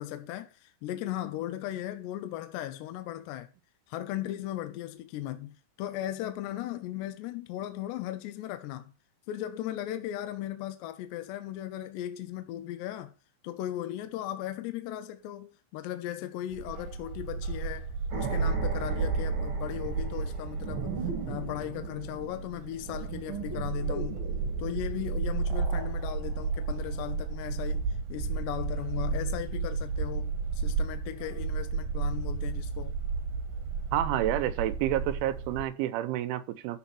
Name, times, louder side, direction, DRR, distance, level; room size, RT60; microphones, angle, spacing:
voice 1, 0.0-3.5 3.9-8.9 9.3-13.1 13.4-24.3 24.6-33.0, left 13 dB, 75° left, 2.7 m, -37 dB
Bark, 16.5-35.6, right 4 dB, 65° right, 2.4 m, -32 dB
sound 1, 18.1-27.6 27.8-28.0, right 5 dB, 45° right, 1.8 m, -41 dB
voice 2, 33.9-36.8, right 12 dB, 85° right, 3.1 m, -29 dB
13.0 x 4.3 x 5.8 m
omnidirectional pair, 5.5 m